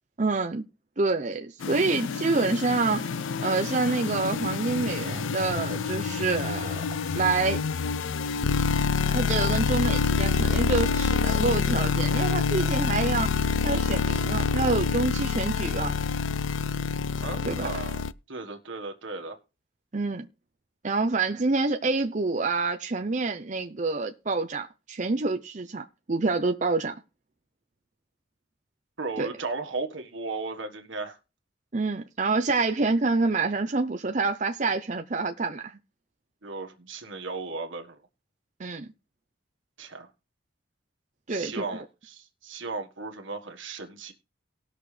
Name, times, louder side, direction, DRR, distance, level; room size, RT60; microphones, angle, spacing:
voice 1, 0.2-0.6 1.0-3.1 3.4-6.8 7.1-7.6 9.1-13.3 13.6-16.0 17.5-17.8 19.9-20.3 20.8-27.0 29.2-29.3 31.7-35.8 38.6-38.9 41.3-41.8, right 3 dB, 40° right, 0.7 m, -27 dB
sound 1, 1.6-18.1, left 5 dB, 85° left, 0.4 m, -27 dB
voice 2, 17.2-18.0 18.3-19.4 29.0-31.2 36.4-38.0 39.8-40.1 41.3-44.1, right 3 dB, 85° right, 1.6 m, -35 dB
19.0 x 6.5 x 3.3 m
head